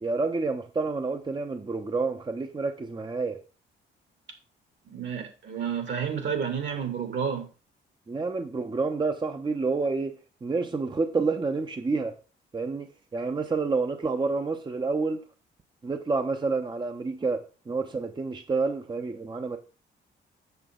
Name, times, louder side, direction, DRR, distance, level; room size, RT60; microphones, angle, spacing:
voice 1, 0.0-3.4 8.1-10.1 10.4-12.1 12.5-12.9 13.1-15.2 15.8-19.6, right 4 dB, 25° right, 0.8 m, -29 dB
voice 2, 4.9-7.5, right 7 dB, 65° right, 2.7 m, -30 dB
8.0 x 6.8 x 3.8 m
cardioid pair, 90°, 20 cm